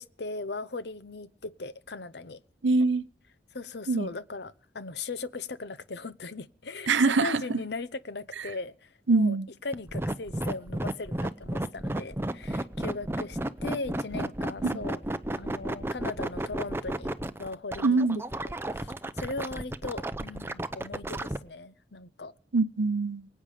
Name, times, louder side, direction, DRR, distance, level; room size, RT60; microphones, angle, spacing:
voice 1, 0.0-2.4 3.5-9.4 9.6-15.0 15.4-17.1 17.4-18.0 18.4-22.3, left 3 dB, 65° left, 0.8 m, -38 dB
voice 2, 2.6-3.0 3.9-4.1 6.9-7.4 9.1-9.5 17.8-18.2 22.5-23.3, right 3 dB, 90° right, 0.7 m, -23 dB
sound 1, 9.7-21.4, right 1 dB, 15° right, 0.7 m, -32 dB
24.0 x 8.8 x 5.0 m
head